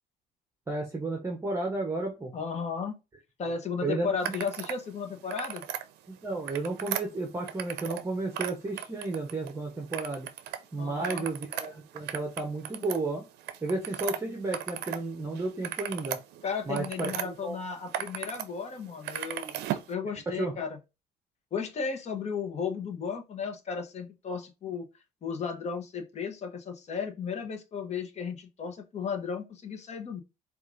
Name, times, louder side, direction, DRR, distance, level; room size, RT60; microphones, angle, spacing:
voice 1, 0.7-2.3 3.8-4.3 6.1-10.3 10.7-13.2 13.6-16.2 16.7-17.6 20.3-20.5, right 2 dB, 15° right, 0.8 m, -33 dB
voice 2, 2.3-2.9 3.4-5.6 10.8-11.3 16.4-20.8 21.5-24.9 25.2-30.2, left 6 dB, 40° left, 1.0 m, -34 dB
sound 1, 4.2-4.8 5.2-5.8 6.3-8.1 8.3-9.5 9.9-10.6 10.9-15.0 15.3-17.3 17.7-18.5 18.7-19.9, right 11 dB, 80° right, 0.5 m, -36 dB
4.6 x 2.5 x 2.5 m
cardioid pair, 110°, 17 cm